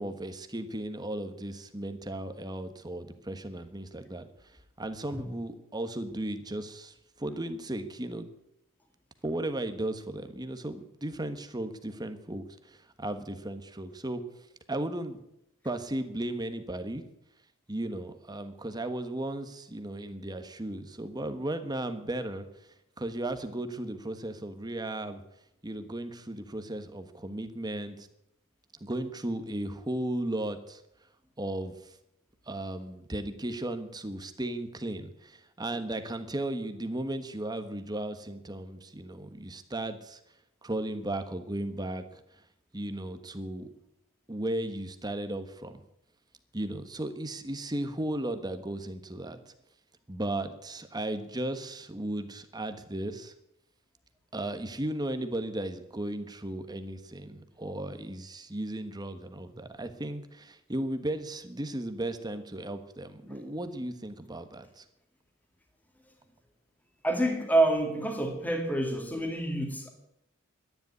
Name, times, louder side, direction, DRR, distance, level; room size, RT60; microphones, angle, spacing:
voice 1, 0.0-8.3 9.2-14.2 14.7-15.2 15.6-17.0 17.7-22.5 23.0-25.2 25.6-28.1 28.8-30.8 31.4-31.9 32.5-40.2 40.6-42.2 42.7-43.7 44.3-45.8 46.5-49.5 50.1-53.3 54.3-64.8, right 1 dB, 20° right, 8 dB, 1.3 m, -35 dB
voice 2, 67.0-69.9, right 1 dB, 10° left, 3 dB, 2.1 m, -27 dB
12.5 x 11.0 x 9.6 m, 0.83 s
head